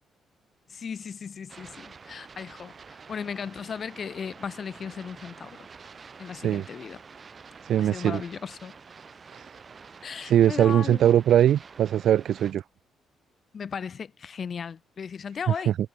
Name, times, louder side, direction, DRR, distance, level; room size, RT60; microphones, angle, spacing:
voice 1, 0.7-5.6 6.2-7.0 7.8-8.7 10.0-11.2 13.5-15.8, left 6 dB, 45° left, 2.1 m, -36 dB
sound 1, 1.5-12.5, right 5 dB, 40° right, 5.6 m, -48 dB
voice 2, 6.3-6.6 7.6-8.2 9.3-9.6 10.2-12.6 15.7-15.8, right 10 dB, 70° right, 0.5 m, -21 dB
cardioid pair, 90°, 0 cm